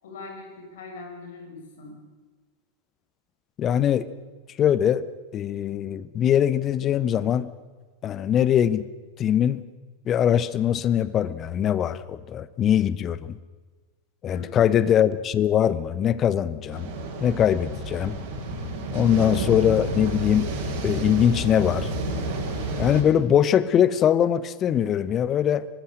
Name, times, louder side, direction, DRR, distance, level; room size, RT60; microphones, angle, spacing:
voice 1, 0.0-2.0 14.3-14.7, left 3 dB, 60° left, 3 dB, 6.0 m, -41 dB
voice 2, 3.6-4.1 4.6-5.0 5.3-7.5 8.0-8.9 9.2-9.6 10.1-13.3 14.2-16.9 17.2-18.2 18.9-20.5 20.8-21.9 22.8-25.7, left 9 dB, 30° left, 16 dB, 1.0 m, -22 dB
sound 1, 16.7-23.0, right 2 dB, 45° right, 5.2 m, -30 dB
24.0 x 20.0 x 6.6 m, 1.4 s
figure-of-eight pair, 90°, 0 cm